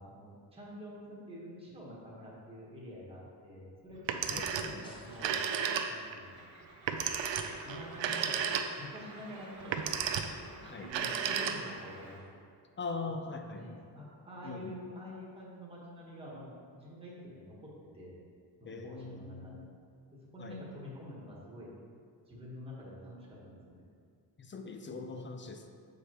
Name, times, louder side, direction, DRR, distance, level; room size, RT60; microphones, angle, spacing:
voice 1, 0.0-5.4 5.9-6.5 7.6-9.8 10.4-12.4 13.0-18.2 18.6-19.6 20.3-21.7 22.3-23.8, left 1 dB, 15° right, -6 dB, 1.3 m, -48 dB
Telephone, 4.0-4.8 5.1-6.2 6.9-9.0 9.6-10.4 10.8-11.9, right 7 dB, 85° right, 0.5 m, -33 dB
sound 1, 4.8-5.8, equal, 10° left, 1.2 m, -55 dB
Train, 6.2-12.3, right 2 dB, 45° right, 0.9 m, -52 dB
voice 2, 12.8-13.7 14.4-14.8 18.7-19.7 20.4-20.7 24.4-25.7, left 4 dB, 30° left, 5 dB, 0.3 m, -41 dB
6.7 x 5.0 x 2.9 m, 2.2 s
wide cardioid pair, 135°, 43 cm